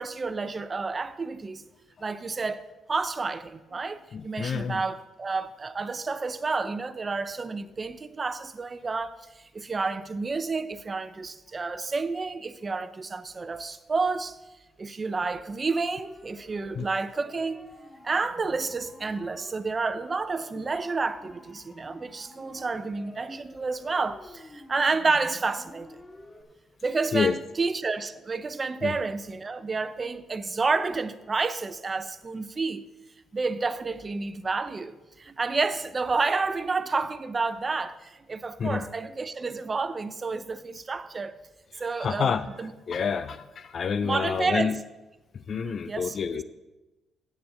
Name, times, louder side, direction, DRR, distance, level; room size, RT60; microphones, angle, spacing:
voice 1, 0.0-1.6 2.0-2.6 2.9-14.4 14.8-17.7 18.0-26.0 26.8-32.8 33.3-41.4 41.8-42.3 42.6-42.7 44.0-44.8 45.5-46.4, right 4 dB, 30° right, 0.6 m, -30 dB
voice 2, 4.1-4.8 16.8-16.9 27.1-27.4 28.8-28.9 38.6-38.8 41.7-44.8 45.3-46.4, left 6 dB, 50° left, 0.4 m, -28 dB
Siren, 16.0-26.4, left 1 dB, 25° left, 1.8 m, -50 dB
8.2 x 6.9 x 7.7 m
cardioid pair, 90°, 0 cm